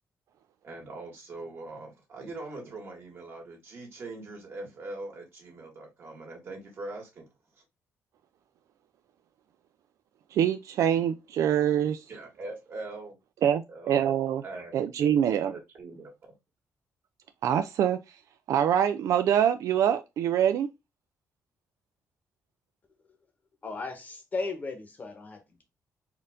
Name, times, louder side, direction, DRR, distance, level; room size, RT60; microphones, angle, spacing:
voice 1, 0.6-7.3 12.1-13.2 13.7-14.8 15.5-16.1, right 2 dB, 45° right, 1.8 m, -42 dB
voice 2, 10.3-12.0 13.4-14.4 14.7-15.5 17.4-18.0 18.5-20.7, right 9 dB, 70° right, 0.3 m, -25 dB
voice 3, 23.6-25.6, left 3 dB, 30° left, 1.0 m, -36 dB
4.3 x 2.6 x 3.5 m
cardioid pair, 140°, 6 cm